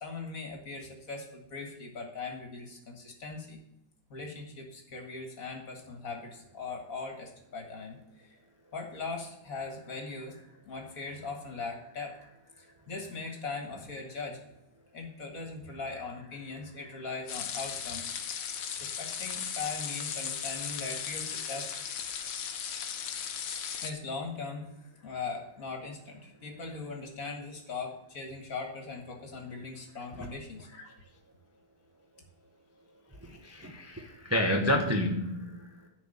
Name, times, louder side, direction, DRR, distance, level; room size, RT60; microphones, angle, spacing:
voice 1, 0.0-3.6 4.1-8.0 8.2-8.4 8.7-14.4 14.9-18.1 18.8-21.9 23.8-30.9, left 4 dB, 45° left, 2 dB, 2.1 m, -40 dB
sound 1, 17.3-23.9, left 8 dB, 65° left, 1.4 m, -36 dB
voice 2, 33.2-35.9, left 1 dB, 15° right, 1 dB, 0.6 m, -30 dB
10.5 x 4.7 x 7.0 m, 0.83 s
omnidirectional pair, 2.2 m